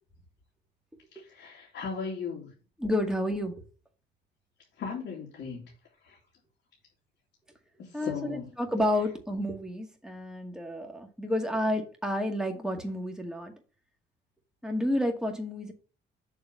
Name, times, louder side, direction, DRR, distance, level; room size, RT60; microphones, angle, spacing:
voice 1, 1.1-2.6 4.8-5.6 6.0-6.2 7.8-8.5, left 5 dB, 70° left, 2.7 m, -37 dB
voice 2, 2.8-3.5 7.9-13.5 14.6-15.7, left 1 dB, 5° right, 2.1 m, -30 dB
7.1 x 3.7 x 5.5 m
cardioid pair, 90°, 20 cm